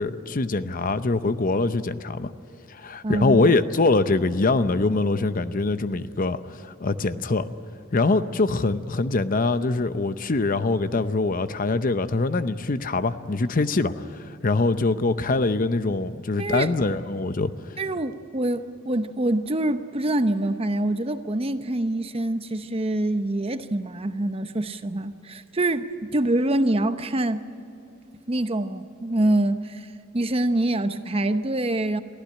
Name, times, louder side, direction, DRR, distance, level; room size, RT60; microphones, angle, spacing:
voice 1, 0.0-2.3 2.7-7.5 7.9-17.5, left 3 dB, 45° left, 12 dB, 0.7 m, -23 dB
voice 2, 3.0-3.5 16.4-16.7 17.8-27.4 28.3-29.9 30.1-32.0, right 1 dB, 30° right, 10 dB, 0.8 m, -25 dB
23.5 x 15.0 x 9.8 m, 2.7 s
head